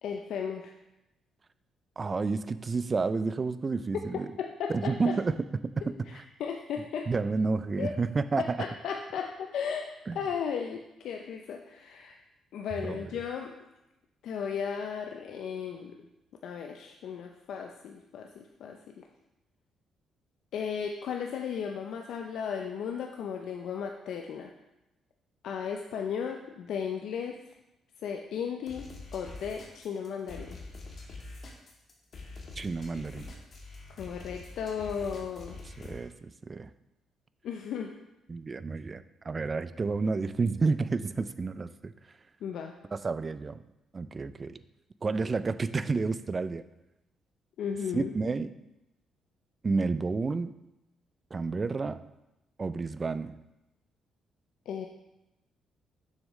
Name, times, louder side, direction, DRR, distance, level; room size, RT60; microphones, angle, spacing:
voice 1, 0.0-0.7 4.4-5.2 6.1-7.1 7.8-7.9 8.4-12.2 12.5-13.5 14.2-16.0 16.4-19.0 20.5-24.5 25.4-27.4 28.0-28.9 29.1-30.6 34.0-35.6 37.4-37.9 42.4-42.7 47.6-48.1 54.7-54.9, left 7 dB, 75° left, 3 dB, 0.5 m, -35 dB
voice 2, 2.0-4.3 4.7-5.4 5.6-6.2 7.1-8.6 10.1-10.2 12.8-13.0 32.6-33.3 35.8-36.7 38.3-41.9 42.9-43.6 43.9-44.6 45.0-46.6 47.9-48.5 49.6-50.5 51.3-52.0 52.6-53.4, right 4 dB, 30° right, 14 dB, 0.3 m, -30 dB
sound 1, 28.7-36.0, left 3 dB, 55° left, 1.3 m, -45 dB
7.1 x 6.4 x 3.1 m, 0.92 s
cardioid pair, 90°, 0 cm